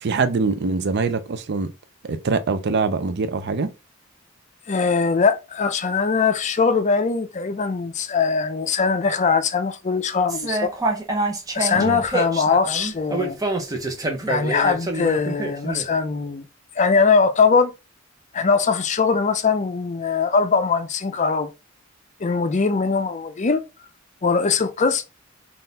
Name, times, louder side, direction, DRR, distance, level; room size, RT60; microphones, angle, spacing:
voice 1, 0.0-1.7 2.0-3.7 11.8-12.0, right 4 dB, 55° right, 0.5 m, -23 dB
voice 2, 4.7-10.7 11.5-13.4 14.3-16.5 16.8-17.7 18.3-21.5 22.2-23.6 24.2-25.0, left 5 dB, 35° left, 0.5 m, -21 dB
sound 1, 10.3-15.8, right 2 dB, 15° right, 0.9 m, -26 dB
3.9 x 2.5 x 4.0 m
head